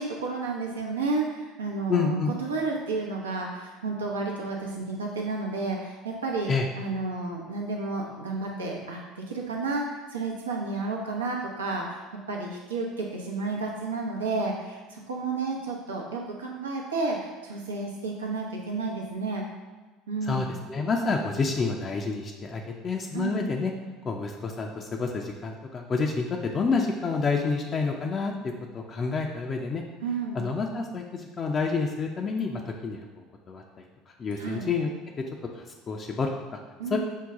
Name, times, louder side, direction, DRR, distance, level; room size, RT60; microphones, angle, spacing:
voice 1, 0.0-9.0 9.3-12.0 12.3-19.4 20.1-20.5 23.1-23.4 30.0-30.5 34.4-34.7 36.8-37.0, right 3 dB, 85° right, 0 dB, 0.7 m, -31 dB
voice 2, 1.9-2.3 6.5-6.7 20.3-23.7 24.0-29.8 30.3-33.8 34.2-34.9 35.2-35.3 35.5-36.6 36.9-37.0, left 4 dB, 35° left, 1 dB, 0.5 m, -29 dB
5.5 x 2.2 x 3.6 m, 1.3 s
hypercardioid pair, 65°, 0 cm